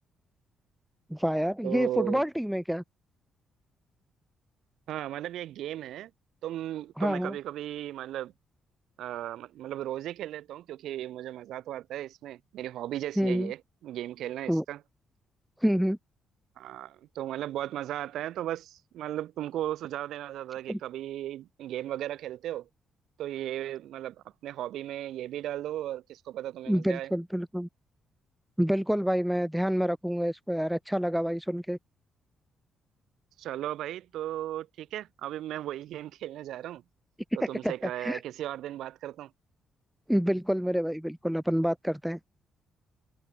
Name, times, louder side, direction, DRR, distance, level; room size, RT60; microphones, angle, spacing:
voice 1, 1.1-2.8 7.0-7.3 13.2-13.5 14.5-14.6 15.6-16.0 20.7-20.8 26.7-27.7 28.6-31.8 37.4-37.7 38.0-38.2 40.1-42.2, equal, ahead, 0.4 m, -27 dB
voice 2, 1.6-2.2 4.9-6.1 6.4-8.3 9.0-14.8 16.6-22.7 23.2-24.2 24.4-27.1 33.4-36.8 37.3-39.3, right 13 dB, 80° right, 2.8 m, -36 dB
cardioid pair, 90°, 0 cm